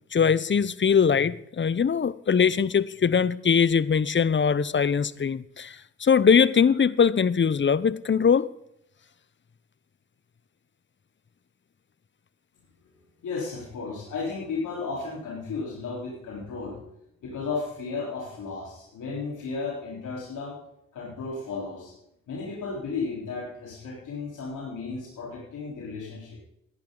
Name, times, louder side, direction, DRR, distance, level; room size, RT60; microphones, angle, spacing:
voice 1, 0.1-8.5, left 6 dB, 40° left, 17 dB, 0.8 m, -21 dB
voice 2, 13.2-16.8 17.2-20.5 20.9-21.9 22.3-26.4, left 4 dB, 80° left, -5 dB, 4.0 m, -34 dB
18.0 x 11.0 x 3.9 m, 0.76 s
supercardioid pair, 45°, 31 cm